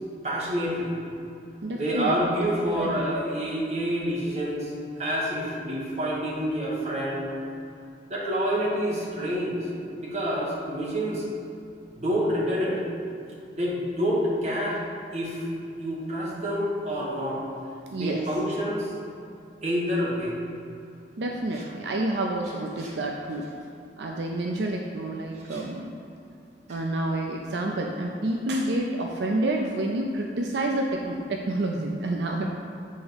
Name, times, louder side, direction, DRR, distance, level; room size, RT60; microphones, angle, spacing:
voice 1, 0.2-0.9 1.7-7.3 8.1-9.6 10.0-11.2 11.9-12.8 13.5-14.8 15.1-15.5 15.8-17.4 18.0-18.9 19.6-20.4 21.5-21.6 22.8-22.9 25.4-25.7 26.7-26.8, equal, 40° right, -5 dB, 1.4 m, -28 dB
voice 2, 1.6-2.2 2.8-3.0 17.9-18.2 21.2-23.5 24.0-25.9 26.7-32.5, right 1 dB, 75° right, 1 dB, 0.5 m, -28 dB
8.3 x 3.5 x 5.1 m, 2.6 s
head